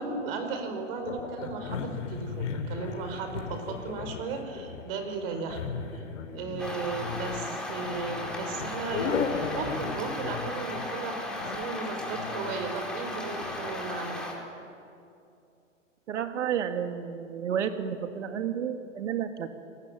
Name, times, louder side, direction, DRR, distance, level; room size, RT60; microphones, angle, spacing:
voice 1, 0.0-6.0 6.3-14.2, right 4 dB, 45° right, 6 dB, 5.3 m, -36 dB
sound 1, 1.0-13.7, left 6 dB, 70° left, 3.3 m, -36 dB
sound 2, 6.6-14.3, left 1 dB, ahead, 4.4 m, -36 dB
voice 2, 16.1-19.7, right 8 dB, 70° right, 7 dB, 2.2 m, -31 dB
28.0 x 19.5 x 9.2 m, 2.6 s
hypercardioid pair, 125°, 38 cm